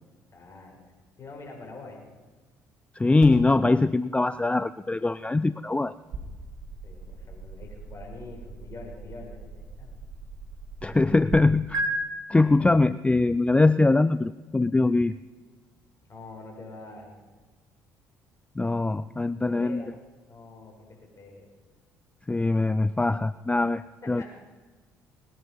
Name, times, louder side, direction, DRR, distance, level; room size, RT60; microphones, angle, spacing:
voice 1, 0.3-0.8 1.2-2.1 6.8-10.0 16.1-17.2 19.5-20.0 20.3-21.5 24.0-24.2, left 3 dB, 40° left, 0 dB, 6.2 m, -45 dB
voice 2, 3.0-5.9 10.8-11.8 12.3-15.1 18.6-19.8 22.3-23.8 24.1-24.2, left 2 dB, 15° left, 15 dB, 0.4 m, -22 dB
sound 1, 3.2-11.4 11.7-11.9, right 2 dB, 60° right, 4.5 m, -39 dB
20.0 x 11.0 x 5.5 m, 1.3 s
hypercardioid pair, 55°, 8 cm